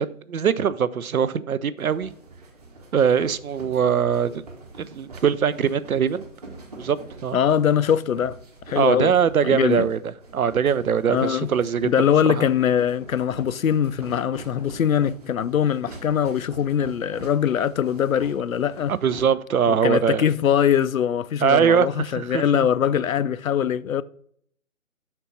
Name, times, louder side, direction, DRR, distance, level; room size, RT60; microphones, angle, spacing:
voice 1, 0.0-2.1 2.9-4.4 4.8-6.2 6.8-7.4 8.8-10.0 10.3-11.9 12.2-12.5 19.0-20.2 21.4-22.7, right 7 dB, 85° right, 0.6 m, -22 dB
sound 1, 1.8-19.2, right 2 dB, 30° right, 1.1 m, -44 dB
voice 2, 7.3-8.4 8.7-9.1 9.4-9.9 11.1-11.5 11.8-18.9 19.7-24.0, left 9 dB, 75° left, 0.5 m, -22 dB
5.9 x 4.4 x 5.4 m
figure-of-eight pair, 155°, 42 cm